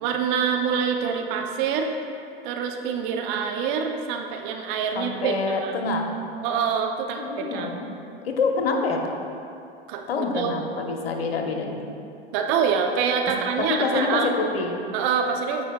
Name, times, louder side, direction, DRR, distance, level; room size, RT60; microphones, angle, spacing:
voice 1, 0.0-1.9 2.4-5.7 6.4-7.7 9.9-10.6 12.3-14.3 14.9-15.6, right 6 dB, 55° right, 4 dB, 0.8 m, -26 dB
voice 2, 4.9-6.1 7.2-7.8 8.2-9.1 10.1-11.8 13.6-14.8, left 4 dB, 75° left, 2 dB, 1.2 m, -26 dB
15.0 x 5.1 x 2.3 m, 2.6 s
hypercardioid pair, 85°, 30 cm